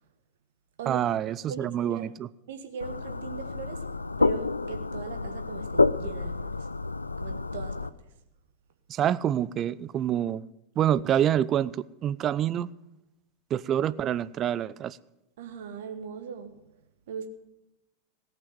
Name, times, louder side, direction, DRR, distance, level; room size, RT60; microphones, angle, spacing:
voice 1, 0.9-2.3 8.9-10.4 10.8-12.7 13.5-15.0, right 10 dB, 30° right, 0.4 m, -27 dB
voice 2, 1.5-2.1 2.5-3.8 4.2-6.6 7.2-7.9 15.4-16.5 17.1-17.3, right 6 dB, 55° right, 1.4 m, -39 dB
sound 1, 2.8-7.9, left 3 dB, 80° left, 0.3 m, -29 dB
17.5 x 6.0 x 7.6 m
figure-of-eight pair, 90°, 0 cm